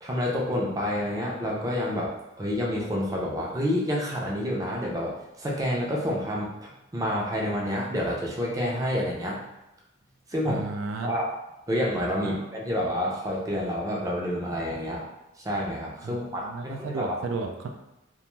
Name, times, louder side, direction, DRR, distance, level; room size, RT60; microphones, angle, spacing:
voice 1, 0.0-9.4 10.3-10.6 11.0-11.3 11.7-15.0 15.4-17.2, equal, 15° right, -3 dB, 0.4 m, -28 dB
voice 2, 10.5-11.1 12.2-12.4 16.0-17.7, right 3 dB, 80° right, 4 dB, 0.3 m, -33 dB
2.5 x 2.2 x 3.0 m, 0.91 s
head